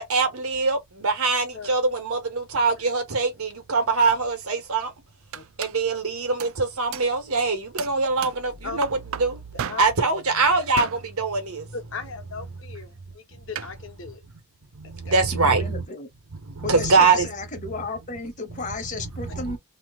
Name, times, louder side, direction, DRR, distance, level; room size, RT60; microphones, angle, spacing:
voice 1, 0.0-4.9 5.6-9.4 9.8-11.7 14.7-15.8 16.4-17.3 17.6-17.7 18.5-18.7 19.2-19.6, right 4 dB, 85° right, 1.2 m, -23 dB
sound 1, 4.9-5.0 5.3-5.8 6.4-6.6 6.9-7.2 7.8-8.5 8.8-10.0 10.8-11.1 13.5-13.7, right 9 dB, 70° right, 0.3 m, -34 dB
voice 2, 11.7-14.2 14.8-15.2, left 4 dB, 60° left, 1.0 m, -38 dB
voice 3, 15.3-16.1 16.6-19.6, left 3 dB, 35° left, 0.9 m, -33 dB
2.9 x 2.4 x 3.5 m
head